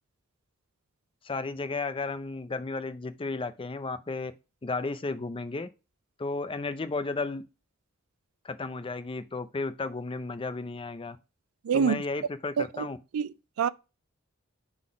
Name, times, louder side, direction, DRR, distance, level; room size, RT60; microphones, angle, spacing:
voice 1, 1.2-4.3 4.6-5.7 6.2-7.4 8.4-11.2 11.7-13.0, left 3 dB, 25° left, 0.5 m, -33 dB
voice 2, 11.6-12.0 12.6-12.9 13.1-13.7, right 7 dB, 80° right, 0.4 m, -27 dB
5.8 x 3.9 x 4.7 m
head